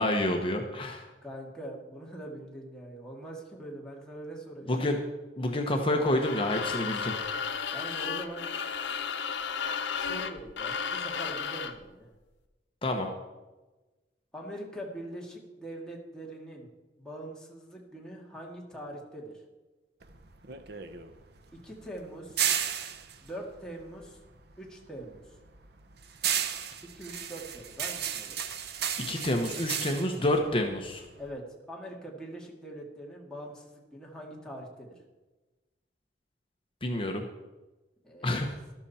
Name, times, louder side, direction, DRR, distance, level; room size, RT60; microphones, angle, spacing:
voice 1, 0.0-1.1 4.7-5.0 5.4-7.1 12.8-13.1 29.0-31.0 36.8-37.2 38.2-38.5, left 1 dB, 30° left, 3 dB, 1.1 m, -28 dB
voice 2, 1.2-4.9 7.7-8.5 10.0-12.1 14.3-16.7 17.0-19.4 21.5-22.4 23.2-24.2 24.6-25.4 26.9-28.4 31.2-34.9 38.0-38.3, right 1 dB, 5° left, -3 dB, 2.4 m, -43 dB
sound 1, 6.1-11.8, left 6 dB, 80° left, 0.9 m, -34 dB
sound 2, 20.0-24.5 24.9-31.3, right 8 dB, 60° right, 0.9 m, -34 dB
13.0 x 12.5 x 4.3 m, 1.1 s
head